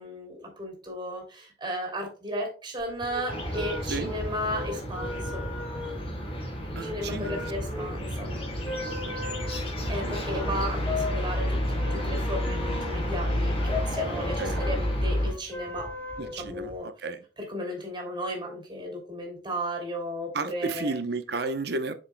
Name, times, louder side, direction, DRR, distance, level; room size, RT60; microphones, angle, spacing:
voice 1, 0.0-5.5 6.8-8.3 9.9-15.9 16.2-16.9 17.4-20.9, equal, 25° right, 2 dB, 3.0 m, -34 dB
sound 1, 2.8-16.8, left 3 dB, 10° left, 1.8 m, -38 dB
sound 2, 3.3-15.3, equal, 35° left, 2.8 m, -30 dB
voice 2, 6.8-7.5 8.3-8.4 9.0-9.3 10.0-10.2 14.4-14.6 16.2-16.7 17.0-17.2 20.3-21.9, right 3 dB, 65° right, 10 dB, 0.8 m, -32 dB
7.5 x 6.5 x 2.2 m, 0.35 s
head